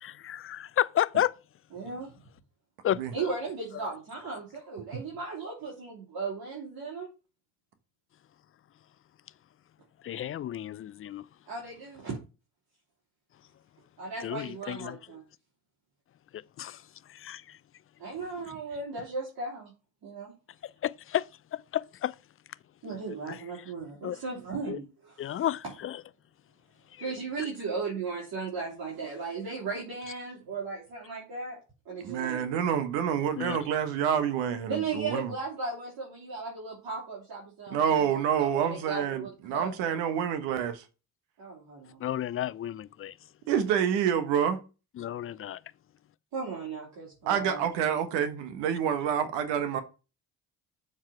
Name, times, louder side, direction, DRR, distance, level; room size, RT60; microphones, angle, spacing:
voice 1, 0.0-1.3 2.8-3.3 3.8-3.9 10.0-11.2 14.2-15.0 16.3-16.8 17.1-17.6 20.8-22.1 23.1-23.4 24.0-24.2 24.7-24.8 25.2-26.0 26.9-27.1 33.4-33.6 42.0-43.2 45.0-45.6, left 11 dB, 30° left, 0.5 m, -32 dB
voice 2, 1.7-2.1 3.1-7.1 11.5-12.2 14.0-15.2 18.0-19.7 20.0-20.3 22.8-25.5 27.0-31.6 31.8-32.6 34.7-39.7 41.4-42.0 46.3-47.6, right 4 dB, 50° right, 3.4 m, -36 dB
voice 3, 32.0-35.3 37.7-40.8 43.5-44.6 47.3-49.8, right 8 dB, 70° right, 1.3 m, -28 dB
7.3 x 4.8 x 5.6 m
hypercardioid pair, 50°, 45 cm